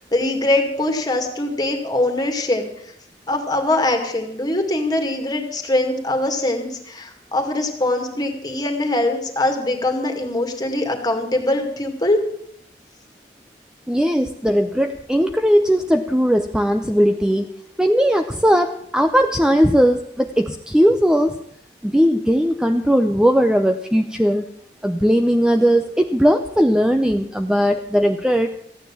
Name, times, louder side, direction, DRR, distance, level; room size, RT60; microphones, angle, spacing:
voice 1, 0.1-2.7 3.3-12.2, left 1 dB, 25° left, 5 dB, 2.1 m, -22 dB
voice 2, 13.9-17.5 17.8-21.3 21.8-24.4 24.8-28.5, equal, 5° right, 6 dB, 0.5 m, -18 dB
14.0 x 9.3 x 7.4 m, 0.71 s
head